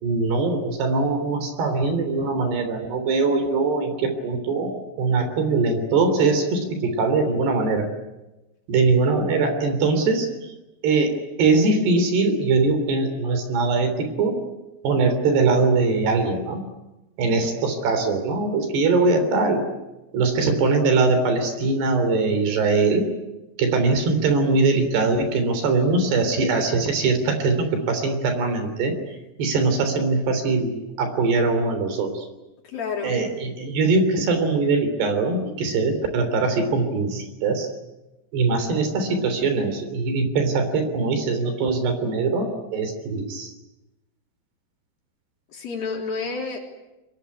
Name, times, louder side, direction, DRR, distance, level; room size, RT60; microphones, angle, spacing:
voice 1, 0.0-7.9 8.7-10.3 10.8-14.4 14.8-16.6 17.2-19.6 20.1-23.1 23.6-28.9 29.4-32.3 33.0-37.7 38.3-43.5, right 3 dB, 65° right, 8 dB, 5.3 m, -22 dB
voice 2, 32.6-33.1 45.5-46.6, left 5 dB, 55° left, 0 dB, 5.1 m, -29 dB
25.0 x 21.5 x 9.7 m, 1.0 s
omnidirectional pair, 5.2 m